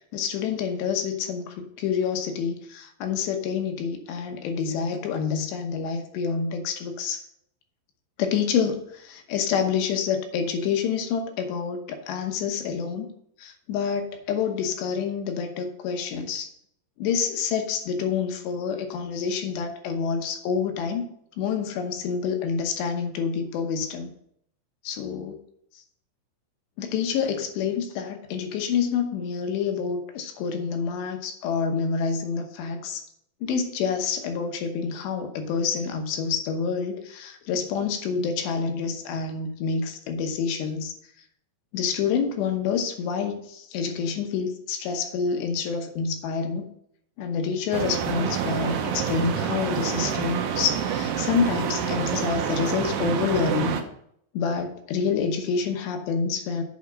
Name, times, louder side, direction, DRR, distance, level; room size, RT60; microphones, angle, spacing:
voice 1, 0.1-7.2 8.2-13.1 13.4-16.5 17.0-21.1 21.4-24.1 24.8-25.4 26.8-33.0 33.4-40.9 41.7-46.7 47.2-53.8 54.3-56.6, left 6 dB, 75° left, 5 dB, 3.1 m, -27 dB
sound 1, 47.7-53.8, right 8 dB, 85° right, 1.9 m, -27 dB
8.3 x 5.1 x 6.1 m, 0.69 s
omnidirectional pair, 5.2 m